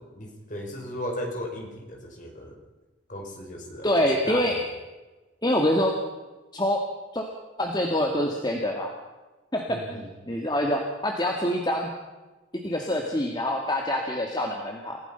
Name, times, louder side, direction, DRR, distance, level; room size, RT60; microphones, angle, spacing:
voice 1, 0.1-2.6 3.1-3.9 4.3-4.6 9.7-10.1, left 1 dB, 40° left, 1 dB, 5.1 m, -36 dB
voice 2, 3.8-4.6 5.4-6.0 6.5-6.8 7.1-7.2 7.6-8.9 9.5-11.9 12.6-15.0, left 1 dB, 20° left, 1 dB, 2.0 m, -25 dB
28.0 x 16.0 x 5.7 m, 1.2 s
head